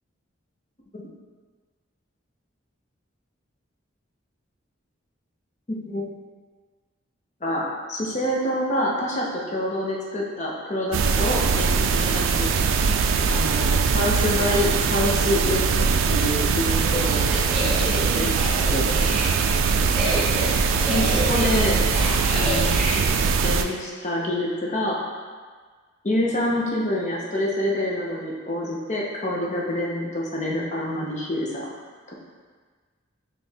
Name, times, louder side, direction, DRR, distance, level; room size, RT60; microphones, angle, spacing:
voice 1, 7.4-12.5 13.3-17.2 17.9-18.9 20.9-21.8 22.3-23.0 23.4-25.0 26.0-31.7 32.1-32.2, left 1 dB, 35° left, -3 dB, 0.7 m, -27 dB
sound 1, 10.9-23.6, right 5 dB, 85° right, 0.3 m, -22 dB
zombie sounds, 16.8-22.9, equal, 5° left, 0.9 m, -30 dB
4.4 x 3.1 x 3.4 m, 1.5 s
head